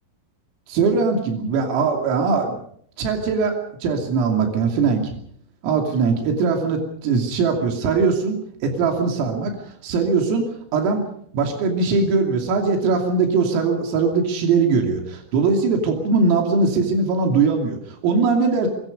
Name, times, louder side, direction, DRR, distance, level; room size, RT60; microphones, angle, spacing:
voice 1, 0.7-2.6 3.0-5.2 5.6-8.4 8.6-11.0 11.3-18.7, right 4 dB, 85° right, 3 dB, 5.4 m, -21 dB
24.5 x 23.5 x 5.3 m, 0.64 s
omnidirectional pair, 5.8 m